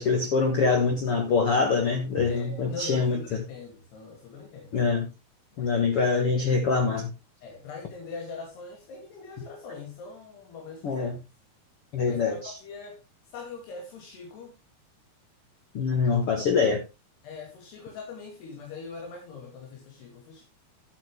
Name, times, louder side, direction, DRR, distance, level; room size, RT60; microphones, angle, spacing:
voice 1, 0.0-3.4 4.7-5.1 5.6-7.1 10.8-11.2 11.9-12.5 15.7-16.8, left 4 dB, 65° left, 1.4 m, -24 dB
voice 2, 2.3-4.8 5.5-5.8 6.2-6.6 7.4-11.1 12.1-13.0 13.3-14.6 17.2-20.4, left 4 dB, 85° left, 4.6 m, -42 dB
11.5 x 8.2 x 3.4 m
omnidirectional pair, 4.6 m